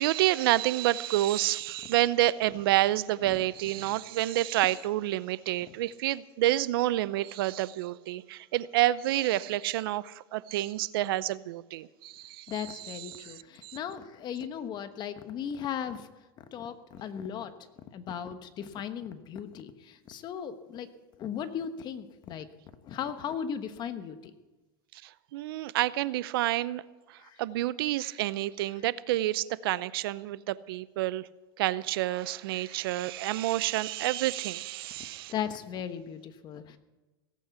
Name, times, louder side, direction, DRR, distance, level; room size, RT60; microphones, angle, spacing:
voice 1, 0.0-13.3 13.6-13.8 25.0-26.8 27.1-31.3 31.6-35.3, right 15 dB, 75° right, 0.6 m, -29 dB
voice 2, 12.5-16.1 16.4-17.5 17.9-20.9 21.2-22.5 22.8-24.3 27.2-27.4 35.3-36.8, left 8 dB, 35° left, 1.2 m, -37 dB
17.5 x 8.5 x 8.2 m
supercardioid pair, 130°, 12 cm